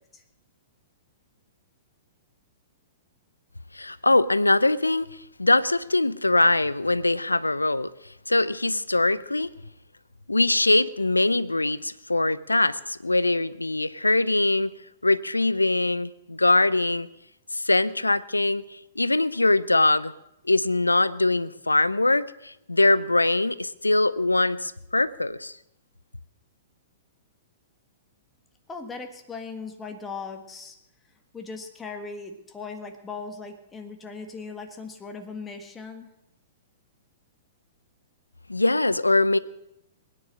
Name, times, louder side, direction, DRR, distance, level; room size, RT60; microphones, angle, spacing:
voice 1, 3.7-5.1 5.4-7.9 8.3-9.5 10.3-14.7 15.0-17.1 17.5-20.1 20.5-25.5 38.5-39.4, left 2 dB, 90° left, 18 dB, 0.6 m, -22 dB
voice 2, 28.7-30.8 31.3-36.1, left 4 dB, 15° left, 5 dB, 1.6 m, -38 dB
21.0 x 9.8 x 6.4 m, 0.84 s
figure-of-eight pair, 110°, 0 cm